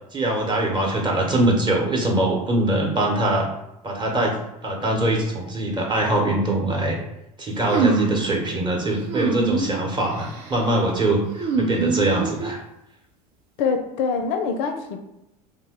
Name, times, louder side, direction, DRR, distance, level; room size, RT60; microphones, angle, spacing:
voice 1, 0.1-3.5 3.8-4.4 4.6-7.0 7.4-12.6, right 1 dB, 20° right, 0 dB, 0.9 m, -22 dB
sound 1, 7.7-8.3 9.1-9.8 10.1-10.6 11.4-12.6, right 4 dB, 60° right, 0.7 m, -24 dB
voice 2, 13.6-15.0, left 5 dB, 60° left, 6 dB, 0.4 m, -24 dB
2.7 x 2.1 x 3.6 m, 0.85 s
hypercardioid pair, 85°, 20 cm